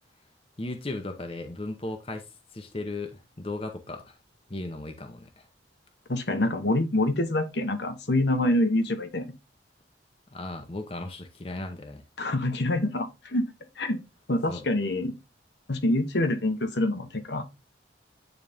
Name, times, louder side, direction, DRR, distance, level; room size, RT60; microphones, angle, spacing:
voice 1, 0.6-4.2 4.5-5.4 10.3-12.0 14.5-14.7, left 2 dB, 30° left, 0.8 m, -36 dB
voice 2, 6.1-9.3 12.2-13.5 13.8-14.0 14.3-15.1 15.7-17.4, left 1 dB, 65° left, 1.1 m, -26 dB
9.2 x 4.0 x 3.5 m
head